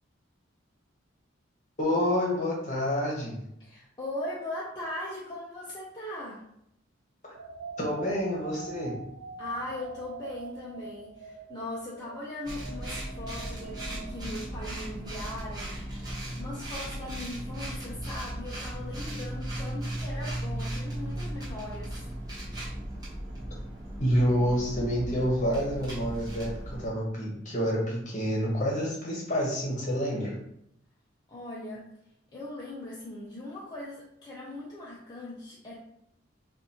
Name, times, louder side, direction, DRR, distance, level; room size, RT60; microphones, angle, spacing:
voice 1, 1.8-3.4 7.8-8.9 24.0-30.3, equal, 40° left, -3 dB, 1.1 m, -28 dB
voice 2, 3.6-6.4 9.4-15.7 16.4-22.0 31.3-31.8 32.3-35.8, left 1 dB, 20° left, -7 dB, 0.6 m, -39 dB
sound 1, 7.3-14.7, right 4 dB, 75° right, 0.4 m, -44 dB
sound 2, 12.4-26.9, right 1 dB, 20° right, 1.1 m, -36 dB
3.9 x 2.5 x 2.8 m, 0.76 s
head